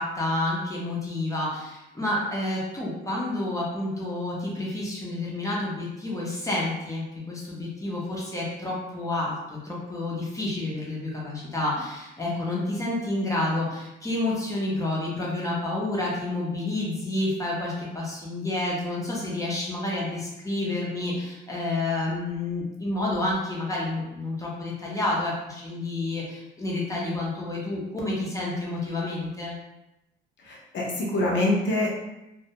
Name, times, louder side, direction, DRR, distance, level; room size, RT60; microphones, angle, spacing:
voice 1, 0.0-29.5, left 2 dB, 15° left, -5 dB, 0.7 m, -29 dB
voice 2, 30.4-31.9, left 1 dB, 65° left, -2 dB, 0.7 m, -25 dB
2.2 x 2.2 x 2.8 m, 0.94 s
cardioid pair, 90°, 20 cm